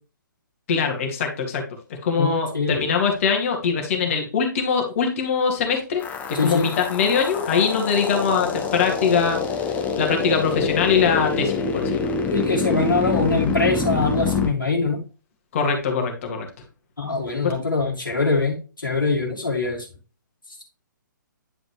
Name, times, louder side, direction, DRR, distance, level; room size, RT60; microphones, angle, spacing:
voice 1, 0.7-1.6 2.0-6.0 6.3-12.1 15.5-16.5 17.4-17.5, left 6 dB, 40° left, 3 dB, 2.2 m, -22 dB
voice 2, 2.2-2.8 6.3-6.7 12.3-15.0 17.0-19.9, left 3 dB, 70° left, -4 dB, 2.1 m, -23 dB
sound 1, 6.0-14.5, left 5 dB, 15° left, 1.1 m, -26 dB
10.0 x 5.0 x 3.2 m, 0.34 s
figure-of-eight pair, 125°, 11 cm